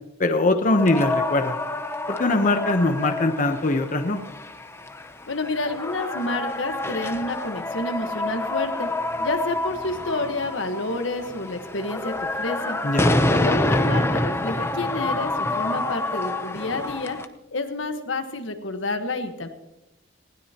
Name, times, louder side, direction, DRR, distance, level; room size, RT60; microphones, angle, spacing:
voice 1, 0.2-1.6 2.2-4.2 12.8-13.3, left 2 dB, 45° left, 7 dB, 1.0 m, -22 dB
sound 1, 0.7-17.3, left 1 dB, 15° left, 0.8 m, -27 dB
voice 2, 5.3-8.9 9.2-12.8 13.3-17.2 17.5-19.5, left 2 dB, 90° left, 6 dB, 1.4 m, -29 dB
20.0 x 16.0 x 3.0 m, 0.92 s
head